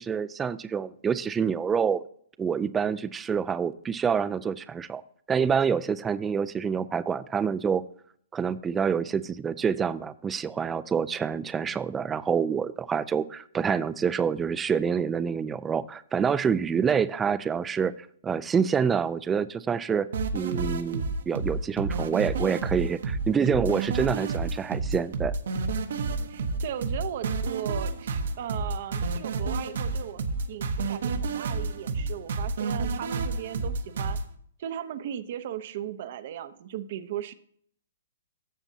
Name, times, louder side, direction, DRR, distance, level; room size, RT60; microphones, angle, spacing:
voice 1, 0.0-2.0 2.4-5.0 5.3-7.8 8.3-20.1 20.3-25.3, right 6 dB, 15° right, 14 dB, 0.4 m, -27 dB
sound 1, 20.1-34.2, right 3 dB, 70° right, 1.0 m, -30 dB
voice 2, 26.3-30.2 30.5-34.2 34.6-37.3, right 10 dB, 50° right, 12 dB, 0.7 m, -37 dB
13.0 x 7.1 x 2.8 m, 0.63 s
hypercardioid pair, 140°, 0 cm